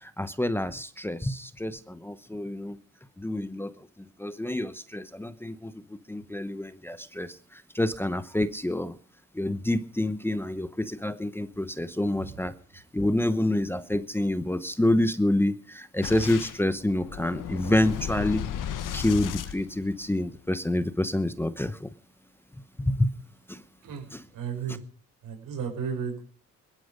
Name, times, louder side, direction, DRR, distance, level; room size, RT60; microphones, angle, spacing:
voice 1, 0.0-2.8 3.2-3.7 4.2-9.0 9.3-12.5 12.9-18.4 18.9-21.9 22.8-23.1 23.5-23.6 24.1-24.2, left 1 dB, 5° left, 12 dB, 0.9 m, -28 dB
Boom, 16.0-20.4, left 9 dB, 75° left, 1.6 m, -35 dB
voice 2, 24.3-24.8 25.2-26.2, right 6 dB, 85° right, 5 dB, 6.6 m, -33 dB
21.5 x 12.0 x 5.2 m, 0.43 s
cardioid pair, 135°, 32 cm